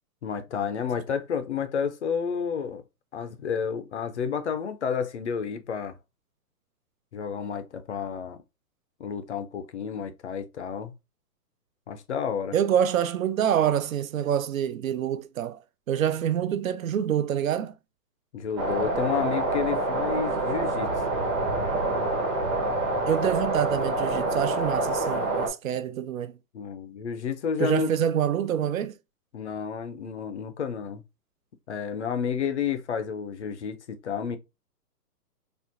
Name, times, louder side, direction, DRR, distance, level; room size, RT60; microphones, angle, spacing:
voice 1, 0.2-2.8 3.1-6.0 7.1-8.4 9.0-10.9 11.9-12.6 18.3-20.9 26.5-27.9 29.3-31.0 31.7-34.4, left 7 dB, 50° left, 0.5 m, -30 dB
voice 2, 12.5-15.6 15.9-17.8 23.1-26.4 27.6-29.0, right 9 dB, 60° right, 0.5 m, -26 dB
sound 1, 18.6-25.5, right 2 dB, 20° right, 0.8 m, -27 dB
4.4 x 2.4 x 2.4 m
hypercardioid pair, 170°, 47 cm